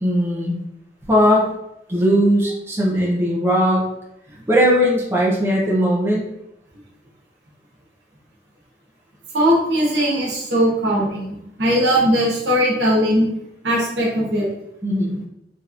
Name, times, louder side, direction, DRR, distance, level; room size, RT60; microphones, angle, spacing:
voice 1, 0.0-0.5 1.1-1.5 1.9-3.8 4.5-6.2 14.8-15.2, equal, 15° right, -5 dB, 0.6 m, -18 dB
voice 2, 9.3-11.3 11.6-13.3 13.6-14.5, equal, 70° right, -3 dB, 1.0 m, -19 dB
3.2 x 2.9 x 2.5 m, 0.82 s
head